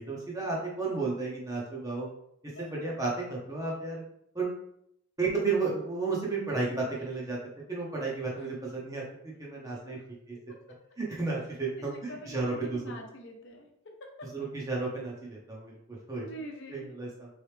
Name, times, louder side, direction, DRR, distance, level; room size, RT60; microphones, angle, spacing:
voice 1, 0.0-2.1 2.6-4.0 4.3-4.5 5.2-7.4 7.7-10.0 10.3-10.4 11.0-13.0 14.3-16.2 16.7-17.3, right 3 dB, 15° right, -4 dB, 0.7 m, -33 dB
voice 2, 11.8-13.7 14.0-14.3 16.1-16.9, equal, 60° left, 2 dB, 0.8 m, -45 dB
3.7 x 3.2 x 3.3 m, 0.73 s
head